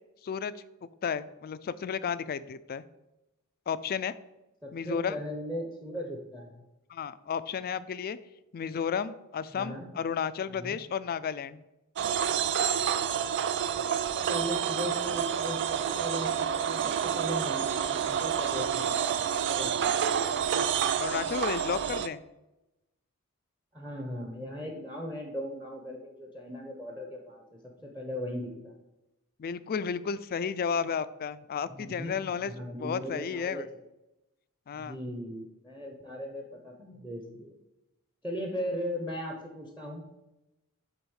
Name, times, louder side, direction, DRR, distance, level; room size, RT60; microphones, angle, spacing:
voice 1, 0.2-0.5 1.0-2.8 3.7-4.1 4.7-5.2 6.9-8.2 8.5-11.6 21.0-22.2 29.4-32.5 32.8-33.7 34.7-35.0, left 6 dB, 45° left, 15 dB, 0.3 m, -32 dB
voice 2, 4.6-6.6 9.5-9.9 10.5-10.8 13.7-13.8 14.1-20.2 23.7-28.8 31.7-33.7 34.7-37.5 38.2-40.0, equal, 10° right, 2 dB, 0.8 m, -38 dB
sound 1, 12.0-22.1, right 8 dB, 55° right, 0.4 m, -29 dB
8.1 x 3.6 x 6.3 m, 0.95 s
head